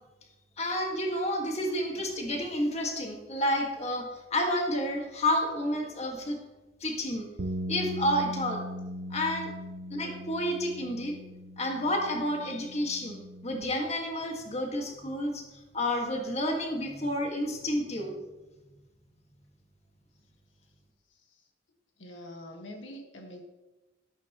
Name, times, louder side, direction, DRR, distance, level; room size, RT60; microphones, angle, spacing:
voice 1, 0.6-6.4 6.8-7.3 7.7-8.6 9.1-9.5 9.9-11.1 11.6-15.4 15.7-18.2, left 1 dB, 35° left, 2 dB, 1.7 m, -30 dB
sound 1, 7.4-13.6, equal, 80° right, 0.8 m, -39 dB
voice 2, 22.0-23.4, left 1 dB, 85° left, 3 dB, 1.6 m, -44 dB
12.5 x 12.5 x 3.0 m, 1.1 s
head